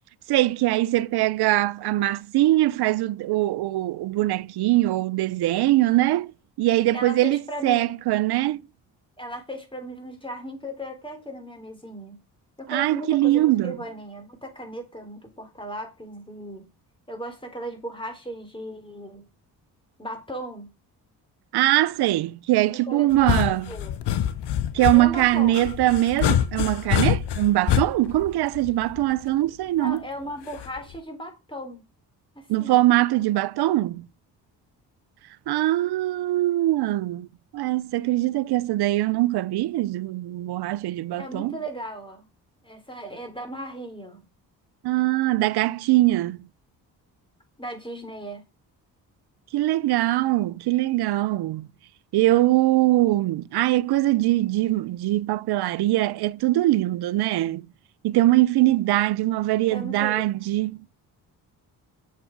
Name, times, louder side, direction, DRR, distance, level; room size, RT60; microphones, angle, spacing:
voice 1, 0.3-6.3 6.6-8.6 12.7-13.8 21.5-23.7 24.7-30.0 32.5-34.1 35.5-37.3 37.5-41.6 44.8-46.5 49.5-51.7 52.1-57.7 58.0-60.8, right 16 dB, 65° right, 0.6 m, -22 dB
voice 2, 6.9-8.0 9.2-12.2 12.6-16.7 17.1-19.3 20.0-20.7 22.9-23.9 24.9-25.5 29.8-31.8 32.4-32.8 41.2-42.3 42.6-44.2 47.6-48.4 59.7-60.3, right 1 dB, 10° left, 4.1 m, -36 dB
sound 1, 23.1-29.2 30.6-31.0, left 10 dB, 65° left, 0.9 m, -25 dB
7.5 x 7.0 x 4.6 m
supercardioid pair, 50°, 43 cm